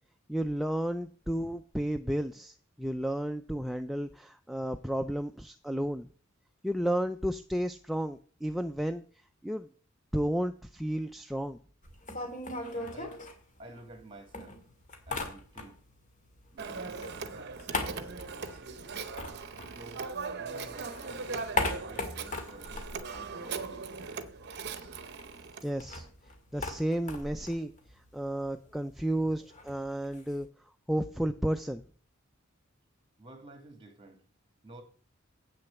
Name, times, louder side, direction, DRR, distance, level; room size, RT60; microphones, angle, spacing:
voice 1, 0.3-6.1 6.6-9.0 9.4-9.7 10.1-11.6 25.6-26.1 26.5-27.7 28.1-30.5 30.9-31.8, right 1 dB, ahead, 0.3 m, -32 dB
sound 1, 11.8-14.0 14.3-16.0 16.2-20.4 20.7-24.0 24.3-24.4 24.6-30.4, left 3 dB, 35° left, 2.0 m, -39 dB
voice 2, 12.7-13.2 13.6-14.6 15.1-15.8 16.5-17.6 17.8-18.3 19.6-20.1 20.4-24.0 33.2-34.2 34.6-34.8, right 2 dB, 25° right, 2.2 m, -51 dB
Telephone, 16.6-25.7, right 4 dB, 55° right, 0.8 m, -40 dB
8.5 x 6.5 x 7.0 m
head